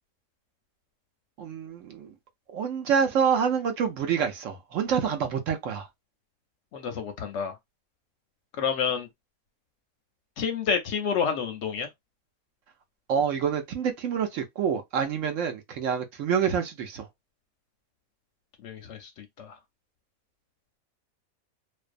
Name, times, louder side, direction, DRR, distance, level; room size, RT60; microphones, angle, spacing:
voice 1, 1.4-2.1 2.5-5.9 13.1-17.1, right 7 dB, 70° right, 0.9 m, -27 dB
voice 2, 6.7-7.6 8.6-9.1 10.4-11.9 18.6-19.6, left 6 dB, 65° left, 0.8 m, -29 dB
2.5 x 2.1 x 2.4 m
omnidirectional pair, 1.5 m